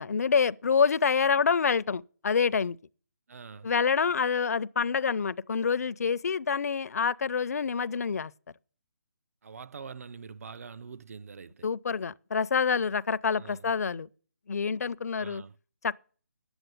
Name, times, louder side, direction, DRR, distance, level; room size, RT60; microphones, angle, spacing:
voice 1, 0.0-2.8 3.6-8.3 11.6-14.1 14.5-15.4 15.8-16.0, left 6 dB, 60° left, 0.5 m, -27 dB
voice 2, 3.3-3.7 9.4-11.7 13.4-13.7 15.2-15.6, right 5 dB, 55° right, 0.5 m, -44 dB
10.5 x 8.0 x 8.0 m
hypercardioid pair, 165°, 10 cm